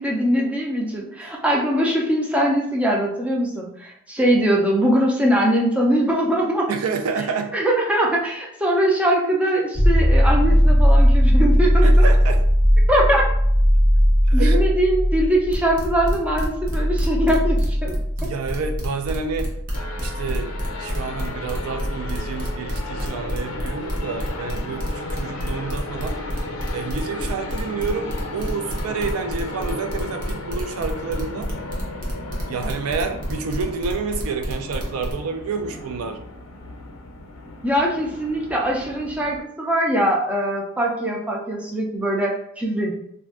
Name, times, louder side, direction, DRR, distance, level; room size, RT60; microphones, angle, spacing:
voice 1, 0.0-6.7 7.5-12.1 12.9-13.3 14.3-17.9 37.6-42.9, equal, 5° right, -2 dB, 0.4 m, -21 dB
voice 2, 6.7-7.5 11.8-12.4 14.3-14.6 18.2-19.5 20.0-20.5 20.8-26.2 26.7-31.5 32.5-36.2, right 5 dB, 75° right, 6 dB, 0.4 m, -29 dB
sound 1, 9.7-23.3 26.0-26.1, equal, 25° right, 1.2 m, -19 dB
sound 2, 15.5-35.1, equal, 40° right, 0.7 m, -30 dB
sound 3, 19.7-39.4, left 2 dB, 65° left, 0.6 m, -35 dB
2.4 x 2.2 x 3.6 m, 0.73 s
head